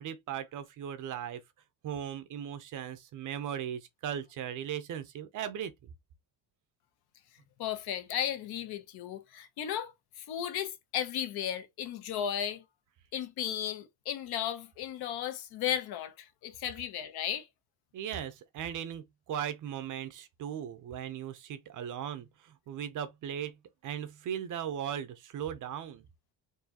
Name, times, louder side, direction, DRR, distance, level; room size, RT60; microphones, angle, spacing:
voice 1, 0.0-1.4 1.8-5.9 17.9-23.6 23.8-26.0, right 9 dB, 45° right, 0.7 m, -38 dB
voice 2, 7.6-12.6 13.1-17.5, left 10 dB, 60° left, 0.8 m, -35 dB
4.6 x 2.7 x 2.8 m
cardioid pair, 155°, 44 cm